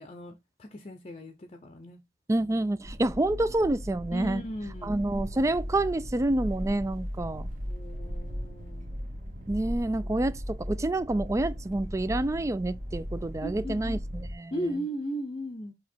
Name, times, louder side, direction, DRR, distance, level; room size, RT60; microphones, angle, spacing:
voice 1, 0.0-2.0 4.1-5.0 7.6-9.0 13.4-14.2 14.5-15.7, equal, 30° left, 0.7 m, -37 dB
voice 2, 2.3-4.4 4.8-7.5 9.5-14.0 14.4-14.5, right 1 dB, 15° right, 0.3 m, -28 dB
sound 1, 2.8-14.3, equal, 45° right, 1.6 m, -37 dB
7.5 x 3.0 x 4.4 m
head